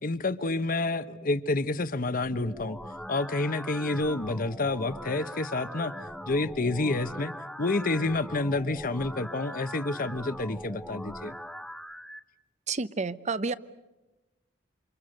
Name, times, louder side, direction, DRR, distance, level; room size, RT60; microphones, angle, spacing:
voice 1, 0.0-2.8 3.1-5.9 6.3-7.3 7.6-11.3, left 2 dB, 50° left, 13 dB, 1.0 m, -29 dB
sound 1, 2.2-12.2, equal, 5° left, 0.9 m, -41 dB
voice 2, 12.7-13.5, right 4 dB, 40° right, 16 dB, 0.8 m, -30 dB
28.5 x 26.5 x 6.6 m, 1.1 s
head